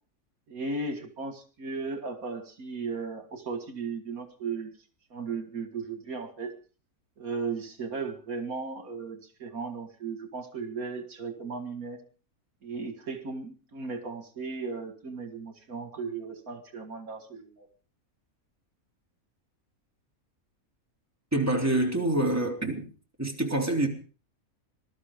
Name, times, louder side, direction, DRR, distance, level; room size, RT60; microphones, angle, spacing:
voice 1, 0.5-4.7 5.1-6.5 7.2-12.0 12.6-17.7, right 4 dB, 75° right, 2.4 m, -36 dB
voice 2, 21.3-22.9 23.2-23.9, right 1 dB, 10° right, 3.7 m, -26 dB
21.0 x 12.5 x 5.1 m
omnidirectional pair, 1.5 m